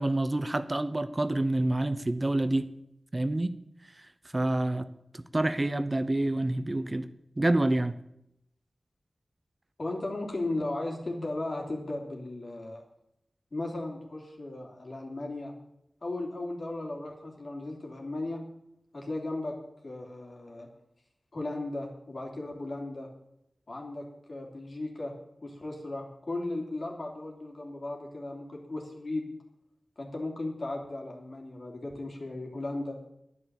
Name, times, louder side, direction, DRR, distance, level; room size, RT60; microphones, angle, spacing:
voice 1, 0.0-2.7 3.1-3.6 4.3-4.9 5.1-7.1 7.4-8.0, right 1 dB, 30° right, 12 dB, 0.8 m, -27 dB
voice 2, 9.8-12.8 13.5-15.5 16.0-19.5 19.8-20.7 21.3-23.1 23.7-25.1 25.4-29.3 30.0-33.0, left 2 dB, 60° left, 0 dB, 3.2 m, -36 dB
11.0 x 9.8 x 7.1 m, 0.81 s
wide cardioid pair, 55°, 0 cm